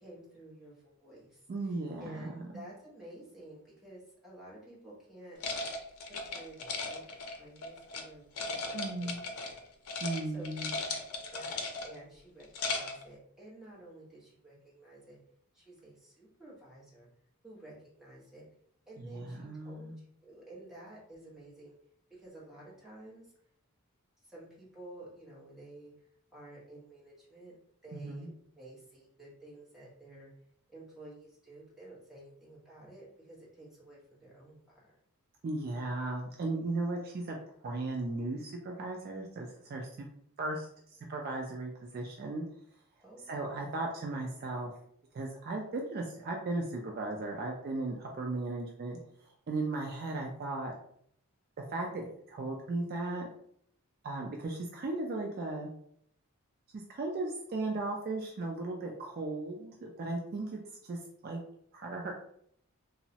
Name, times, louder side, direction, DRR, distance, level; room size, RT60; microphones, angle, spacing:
voice 1, 0.0-5.4 6.0-7.0 7.3-9.6 10.2-10.7 11.2-15.2 15.5-17.1 17.4-18.4 18.9-21.8 22.1-23.3 24.2-27.5 27.8-30.3 30.7-35.0 43.0-43.4, right 1 dB, ahead, -7 dB, 0.9 m, -52 dB
voice 2, 1.5-2.6 8.7-9.2 10.0-10.7 19.0-19.9 27.9-28.3 35.4-37.4 37.6-39.9 40.4-40.7 41.1-42.4 43.3-44.7 45.1-50.8 51.7-53.3 54.0-55.7 56.9-61.4 61.7-62.1, right 2 dB, 45° right, 0 dB, 0.3 m, -36 dB
sound 1, 5.4-8.0 8.4-9.6 9.9-10.2 10.4-12.0 12.4-13.0, left 3 dB, 85° left, 0.5 m, -37 dB
3.0 x 2.0 x 2.7 m, 0.68 s
head